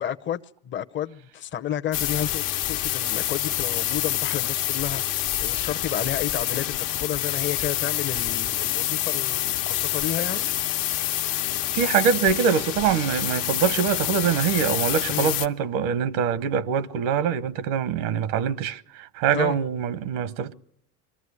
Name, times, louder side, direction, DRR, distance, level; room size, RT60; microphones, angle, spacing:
voice 1, 0.0-10.5 15.1-15.3 19.3-19.6, left 10 dB, 30° left, 0.8 m, -31 dB
sound 1, 1.9-15.5, left 13 dB, 65° left, 1.2 m, -27 dB
voice 2, 11.7-20.5, right 7 dB, 80° right, 1.1 m, -24 dB
23.0 x 14.0 x 9.7 m
supercardioid pair, 105°, 38 cm